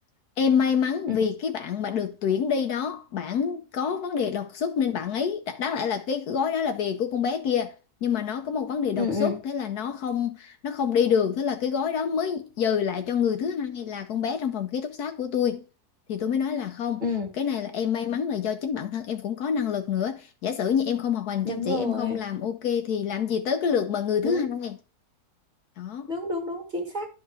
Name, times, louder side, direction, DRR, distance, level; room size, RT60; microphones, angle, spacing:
voice 1, 0.4-7.7 8.0-15.6 16.1-17.0 17.4-24.8 25.8-26.1, left 7 dB, 70° left, 1.2 m, -27 dB
voice 2, 9.0-9.4 17.0-17.3 21.4-22.2 24.2-24.5 26.1-27.1, left 3 dB, 25° right, 1.9 m, -29 dB
11.5 x 4.6 x 3.4 m
omnidirectional pair, 1.8 m